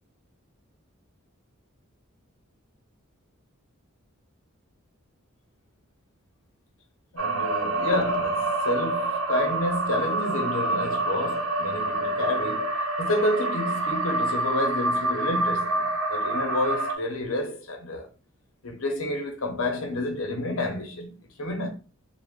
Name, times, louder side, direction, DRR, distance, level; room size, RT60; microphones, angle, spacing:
voice 1, 7.1-12.7 13.0-18.1 18.6-21.7, left 1 dB, 75° left, 0.8 m, -29 dB
sound 1, 7.2-16.9, right 2 dB, 90° right, 0.8 m, -27 dB
3.3 x 2.3 x 3.6 m
head